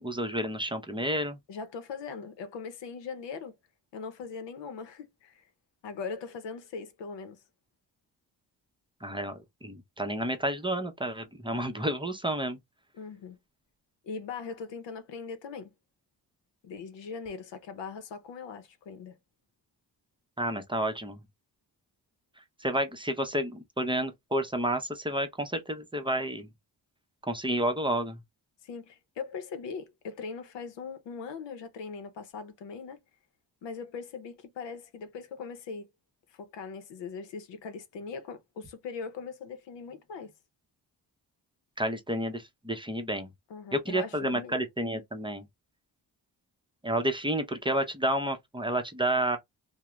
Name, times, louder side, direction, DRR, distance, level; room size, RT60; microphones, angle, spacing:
voice 1, 0.0-1.4 9.0-12.6 20.4-21.2 22.6-26.5 27.2-28.2 41.8-43.3 43.7-45.4 46.8-49.4, right 1 dB, 10° right, 0.6 m, -30 dB
voice 2, 1.5-3.6 3.9-5.4 5.8-7.4 13.0-13.4 14.0-15.7 16.6-19.2 28.6-33.0 33.6-35.9 36.3-40.3 43.5-44.5, left 5 dB, 85° left, 0.7 m, -40 dB
2.3 x 2.0 x 3.0 m
cardioid pair, 80°, 42 cm